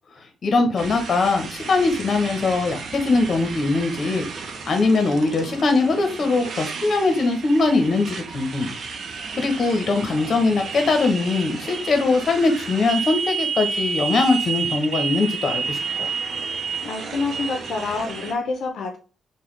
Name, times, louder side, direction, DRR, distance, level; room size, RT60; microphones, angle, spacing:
voice 1, 0.4-8.7 9.3-16.1, left 3 dB, 50° left, 6 dB, 0.8 m, -21 dB
Motorcycle, 0.8-18.3, right 5 dB, 60° right, 0.6 m, -31 dB
voice 2, 16.8-19.0, left 4 dB, 80° left, 3 dB, 0.5 m, -27 dB
3.8 x 2.2 x 3.1 m, 0.34 s
cardioid pair, 105°, 0 cm